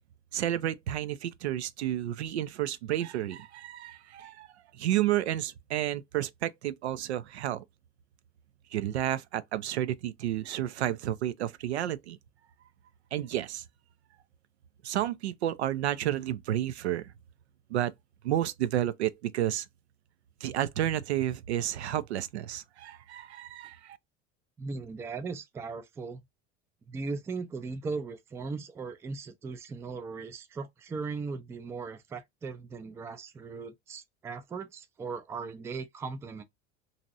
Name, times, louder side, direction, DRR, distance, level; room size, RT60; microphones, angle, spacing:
voice 1, 0.3-4.5 4.8-7.6 8.7-12.2 13.1-13.6 14.8-17.1 17.7-17.9 18.2-19.7 20.4-24.0, right 12 dB, 70° right, 0.5 m, -31 dB
voice 2, 24.6-26.2 26.9-36.4, right 4 dB, 10° right, 0.3 m, -38 dB
2.9 x 2.7 x 2.6 m
figure-of-eight pair, 80°, 35 cm